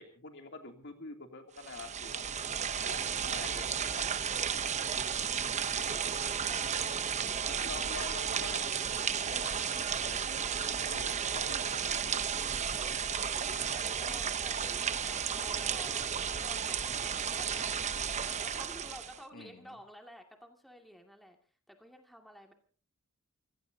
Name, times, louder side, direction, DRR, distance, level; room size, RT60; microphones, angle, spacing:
voice 1, 0.0-2.2 2.8-3.7 7.5-9.8 10.1-10.4 10.8-12.3 19.3-19.8, left 3 dB, 55° left, 4 dB, 2.8 m, -47 dB
sound 1, 1.6-19.2, right 7 dB, 30° right, 0.8 m, -33 dB
voice 2, 6.1-7.8 10.3-10.6 12.7-16.1 16.4-17.7 18.2-21.4 21.7-22.5, equal, ahead, 2 dB, 2.3 m, -53 dB
Tick-tock, 7.6-7.7 8.6-8.7 9.6-9.7 10.6-10.7 11.6-11.7 12.6-12.7 13.6-13.7 14.6-14.7 15.6-15.7 16.6-16.7 17.6-17.7 18.6-18.7, right 4 dB, 60° right, 7.0 m, -55 dB
28.0 x 17.0 x 2.8 m, 0.41 s
head